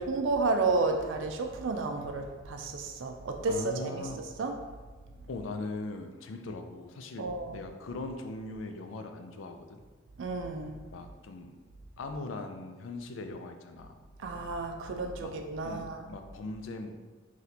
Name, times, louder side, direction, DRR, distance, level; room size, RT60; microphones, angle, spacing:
voice 1, 0.0-4.1 4.4-4.5 7.2-7.6 10.2-10.8 14.2-16.1, right 3 dB, 75° right, 4 dB, 0.4 m, -31 dB
voice 2, 3.5-4.2 5.3-9.8 10.9-11.6 12.0-14.0 15.2-15.3 15.6-17.0, left 3 dB, 90° left, 6 dB, 0.4 m, -40 dB
4.0 x 3.1 x 2.8 m, 1.4 s
head